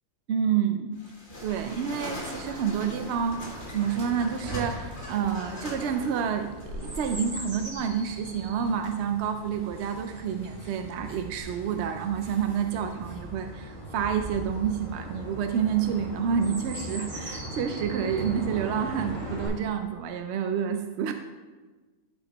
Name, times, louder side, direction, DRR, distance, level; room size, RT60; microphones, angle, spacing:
voice 1, 0.3-0.9 1.4-3.4 3.7-21.1, right 7 dB, 65° right, 6 dB, 0.7 m, -29 dB
sound 1, 0.9-11.4, left 1 dB, 50° left, 1.6 m, -42 dB
Chirp tweet, 3.2-19.5, right 1 dB, 45° right, 3.1 m, -40 dB
11.5 x 4.7 x 4.0 m, 1.3 s
omnidirectional pair, 1.5 m